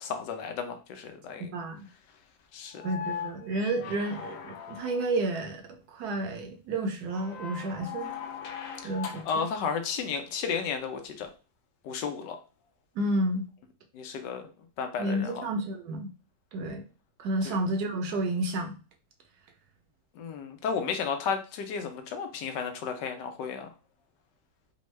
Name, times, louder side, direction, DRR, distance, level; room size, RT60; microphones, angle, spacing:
voice 1, 0.0-1.5 2.5-2.9 8.8-8.9 9.2-11.3 11.8-12.4 13.9-14.5 14.8-15.4 17.4-17.5 20.2-23.7, left 6 dB, 90° left, 6 dB, 1.3 m, -33 dB
voice 2, 1.4-1.8 2.8-5.6 5.9-8.1 8.8-9.5 13.0-13.4 15.0-16.1 16.5-16.8 17.2-18.8, right 1 dB, 70° right, 4 dB, 1.1 m, -30 dB
sound 1, 2.7-5.3 7.1-9.6 11.2-11.3, left 7 dB, 70° left, 0.8 m, -40 dB
3.5 x 2.2 x 3.1 m, 0.33 s
omnidirectional pair, 1.8 m